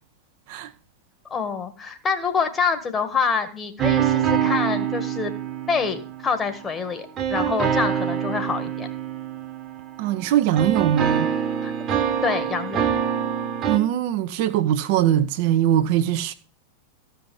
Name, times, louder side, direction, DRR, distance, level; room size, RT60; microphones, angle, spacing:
voice 1, 1.3-5.3 5.7-8.9 11.6-11.7 12.2-12.8, left 5 dB, 20° left, 1.6 m, -26 dB
sound 1, 3.8-6.5 7.2-10.2 10.6-13.8, right 8 dB, 30° right, 1.2 m, -25 dB
voice 2, 10.0-11.3 13.7-16.3, right 11 dB, 50° right, 0.7 m, -21 dB
14.5 x 5.6 x 6.1 m
figure-of-eight pair, 90°, 0 cm